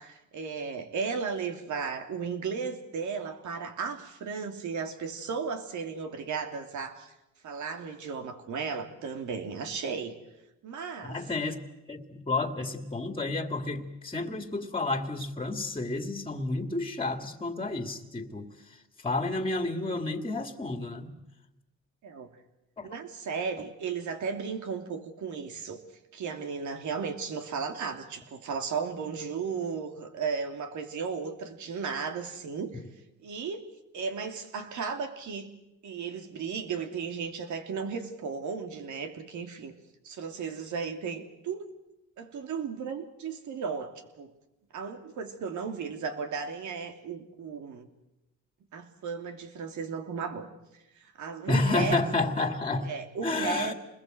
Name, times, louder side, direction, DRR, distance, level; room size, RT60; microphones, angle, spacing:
voice 1, 0.0-7.1 7.4-10.2 10.6-11.2 22.0-22.3 22.8-25.8 26.1-32.8 33.2-35.5 35.8-39.7 40.0-41.7 42.2-44.3 44.7-47.9 48.7-50.5 50.9-52.0 52.8-53.7, right 5 dB, 75° right, 6 dB, 3.1 m, -35 dB
voice 2, 11.0-11.6 11.9-18.5 19.0-21.1 22.8-22.9 51.5-52.9 53.2-53.7, left 2 dB, 20° left, 7 dB, 2.3 m, -30 dB
27.0 x 21.0 x 7.9 m, 0.92 s
cardioid pair, 90°, 30 cm